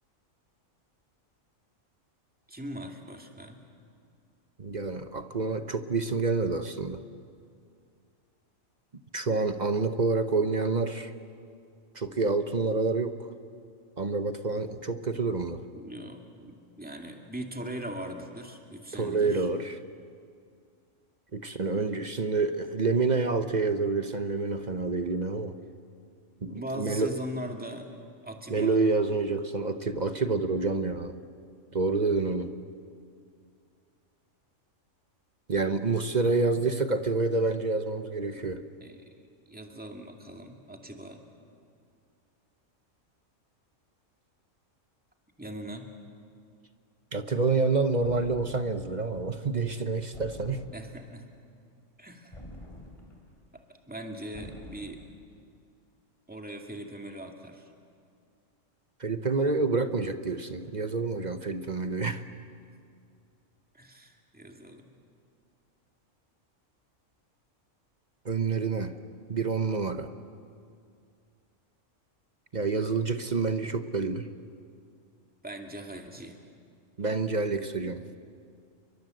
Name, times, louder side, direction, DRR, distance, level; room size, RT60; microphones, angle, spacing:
voice 1, 2.5-3.6 15.7-19.5 21.5-21.6 26.5-27.9 28.2-28.8 38.8-39.1 39.5-41.2 45.4-45.9 50.7-51.3 52.0-52.4 53.5-55.0 56.3-57.7 63.7-64.9 75.4-76.4, right 1 dB, 5° right, 3 dB, 2.2 m, -40 dB
voice 2, 4.6-7.0 9.1-11.1 11.9-13.2 14.0-15.6 18.9-19.8 21.3-25.5 26.4-27.1 28.5-31.1 31.7-32.5 35.5-38.6 47.1-50.6 59.0-62.2 68.2-68.9 69.3-70.1 72.5-74.3 77.0-78.0, right 3 dB, 35° right, 9 dB, 1.0 m, -28 dB
sound 1, 48.0-48.9 50.1-51.1 52.3-53.4 54.3-55.2, left 1 dB, 25° left, 3.7 m, -47 dB
30.0 x 23.0 x 7.8 m, 2.3 s
omnidirectional pair, 1.3 m